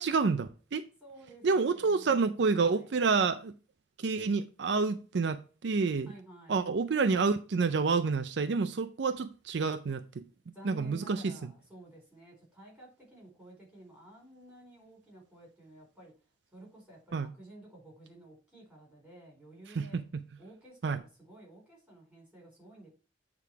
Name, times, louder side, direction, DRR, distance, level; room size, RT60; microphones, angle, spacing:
voice 1, 0.0-0.8 1.4-3.5 4.0-6.1 6.5-10.2 10.6-11.3 17.1-17.3 19.7-20.0 20.8-21.0, right 4 dB, 65° right, 0.5 m, -28 dB
voice 2, 1.0-2.9 6.1-6.7 10.5-16.1 16.5-20.0 20.4-22.9, right 1 dB, 5° right, 4.1 m, -53 dB
8.4 x 3.7 x 4.6 m
head